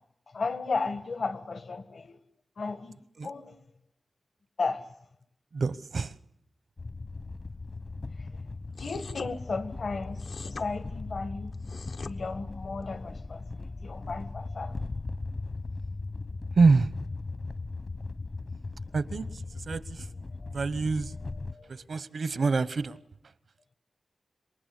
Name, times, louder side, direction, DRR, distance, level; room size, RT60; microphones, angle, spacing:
voice 1, 0.3-2.2 2.6-3.0 3.2-3.5 4.6-4.9 8.8-11.5 12.0-14.7 21.5-21.7, left 4 dB, 75° left, 1.5 m, -34 dB
voice 2, 5.5-6.1 16.6-16.9 18.9-20.1 20.5-21.1 21.7-23.0, right 4 dB, 80° right, 1.0 m, -26 dB
sound 1, 6.8-21.5, left 3 dB, 50° left, 1.0 m, -38 dB
sound 2, 8.7-9.3 10.2-10.7 11.5-12.1, left 4 dB, 90° left, 1.2 m, -42 dB
27.0 x 23.5 x 8.3 m
wide cardioid pair, 75°, 0 cm